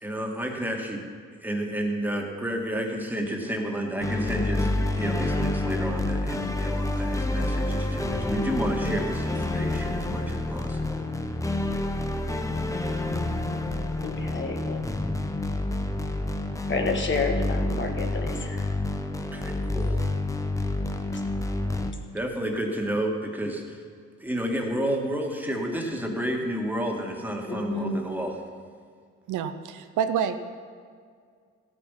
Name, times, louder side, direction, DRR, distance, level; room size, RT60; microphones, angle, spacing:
voice 1, 0.0-11.0 19.2-20.1 22.1-23.8 24.2-28.4, equal, 5° right, 1 dB, 2.1 m, -31 dB
sound 1, 4.0-21.9, left 2 dB, 10° left, 0.9 m, -28 dB
voice 2, 14.0-14.8 16.7-18.7 27.5-28.1, left 3 dB, 40° left, 3 dB, 1.8 m, -30 dB
voice 3, 29.3-30.4, right 8 dB, 85° right, 9 dB, 0.8 m, -27 dB
14.5 x 8.8 x 5.8 m, 2.1 s
cardioid pair, 90°, 30 cm